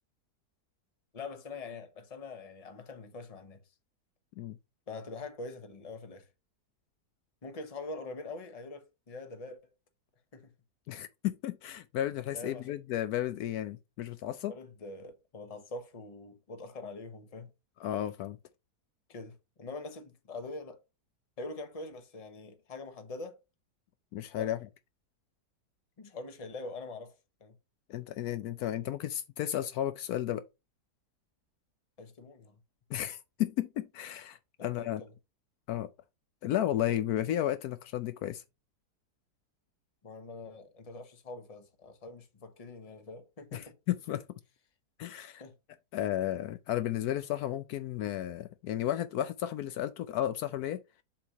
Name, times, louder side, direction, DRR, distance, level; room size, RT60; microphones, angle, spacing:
voice 1, 1.1-3.6 4.9-6.3 7.4-9.6 10.3-10.5 12.3-12.7 14.5-17.5 19.1-20.8 21.4-23.4 24.3-24.5 26.0-27.5 32.0-32.6 34.6-35.1 40.0-43.8 45.4-45.5, left 3 dB, 25° left, 0.9 m, -44 dB
voice 2, 10.9-14.5 17.8-18.4 24.1-24.6 27.9-30.5 32.9-35.0 35.7-35.9 36.4-38.4 43.5-44.2 45.0-45.4 45.9-50.8, left 12 dB, 75° left, 1.0 m, -33 dB
7.3 x 3.0 x 5.1 m
omnidirectional pair, 1.7 m